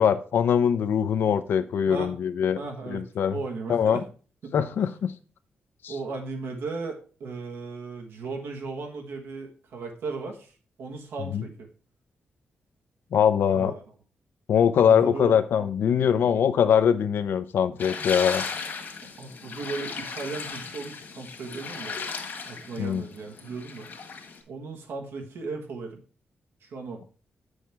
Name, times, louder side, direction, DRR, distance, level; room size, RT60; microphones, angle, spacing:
voice 1, 0.0-2.6 2.9-3.4 3.7-4.0 4.5-5.1 5.8-5.9 11.3-11.5 13.1-13.7 14.5-18.4 22.8-23.0, left 8 dB, 75° left, 11 dB, 0.6 m, -22 dB
voice 2, 1.9-2.2 2.6-4.0 4.4-4.5 4.8-5.0 5.9-10.5 10.8-11.7 13.5-13.8 14.8-15.4 19.2-21.9 22.5-23.9 24.5-26.0 26.6-27.0, right 4 dB, 85° right, 2 dB, 1.5 m, -36 dB
sound 1, 17.8-24.4, left 5 dB, 60° left, 1.6 m, -36 dB
7.6 x 6.4 x 3.4 m, 0.37 s
wide cardioid pair, 130°, 4 cm